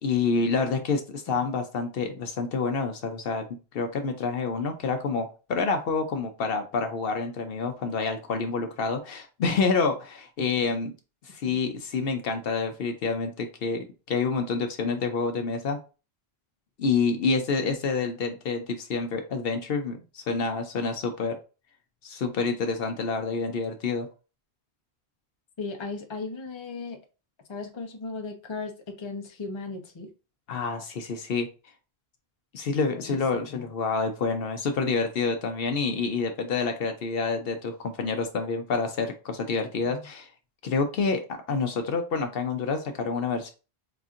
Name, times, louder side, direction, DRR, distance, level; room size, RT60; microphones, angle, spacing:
voice 1, 0.0-3.5 3.7-10.9 11.2-15.8 16.8-21.4 22.0-24.1 30.5-31.5 32.5-40.3 40.6-41.2 41.5-43.5, left 4 dB, 65° left, 6 dB, 0.8 m, -28 dB
voice 2, 25.6-27.0 27.5-28.7 29.0-30.1 32.9-33.7 39.8-40.1, left 3 dB, 30° left, 3 dB, 0.6 m, -37 dB
4.9 x 2.6 x 2.4 m, 0.32 s
omnidirectional pair, 1.1 m